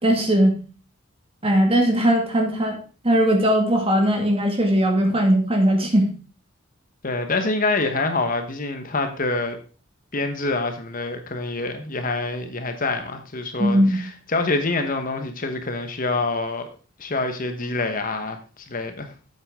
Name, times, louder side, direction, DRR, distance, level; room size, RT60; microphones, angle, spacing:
voice 1, 0.0-0.6 1.4-2.8 3.0-6.1 13.6-14.0, equal, 30° right, 2.0 m, -19 dB
voice 2, 7.0-9.6 10.1-16.7 17.0-18.4 18.7-19.1, left 3 dB, 45° left, 1.2 m, -26 dB
8.9 x 8.0 x 3.7 m
head